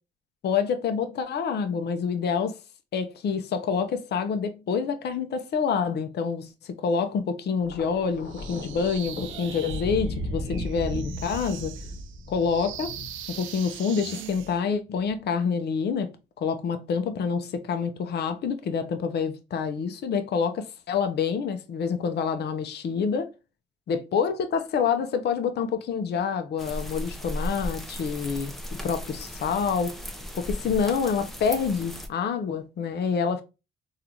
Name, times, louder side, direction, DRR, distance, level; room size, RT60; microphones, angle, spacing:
voice 1, 0.4-2.6 2.9-11.8 12.3-13.0 13.3-23.3 23.9-30.0 30.3-33.4, left 6 dB, 55° left, 0.6 m, -27 dB
Thunder, 7.6-14.0 14.9-15.2, equal, 75° left, 1.0 m, -35 dB
sound 1, 8.2-14.6, right 10 dB, 75° right, 0.4 m, -41 dB
sound 2, 26.6-32.1, equal, ahead, 0.6 m, -36 dB
3.7 x 2.4 x 2.9 m
cardioid pair, 90°, 20 cm